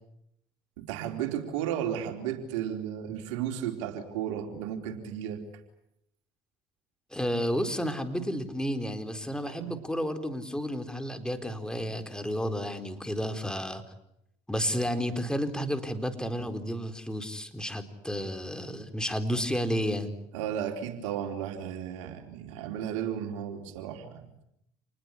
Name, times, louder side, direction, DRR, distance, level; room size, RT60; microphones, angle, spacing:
voice 1, 0.8-5.4 9.4-9.7 20.3-24.2, right 9 dB, 85° right, 4 dB, 4.1 m, -34 dB
voice 2, 7.1-13.8 14.5-20.1, equal, 5° left, 7 dB, 4.3 m, -31 dB
28.5 x 20.5 x 10.0 m, 0.80 s
supercardioid pair, 75°, 16 cm